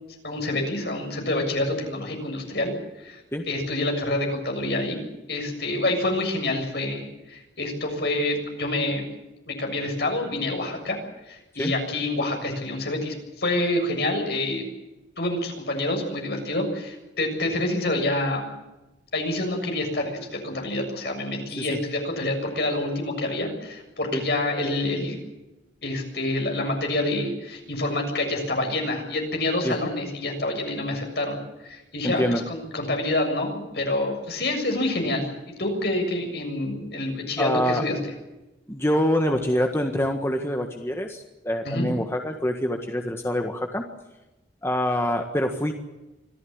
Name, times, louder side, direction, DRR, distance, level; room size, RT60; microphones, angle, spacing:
voice 1, 0.2-3.2 3.5-5.0 5.3-9.1 9.5-11.0 11.3-14.7 15.2-18.5 19.1-25.2 25.8-31.4 31.6-35.3 35.6-38.0 41.6-41.9, left 2 dB, 65° left, 3 dB, 7.2 m, -27 dB
voice 2, 32.0-32.4 37.4-37.8 38.7-43.8 44.6-45.7, equal, 15° left, 4 dB, 1.6 m, -25 dB
25.5 x 15.5 x 8.9 m, 1.0 s
head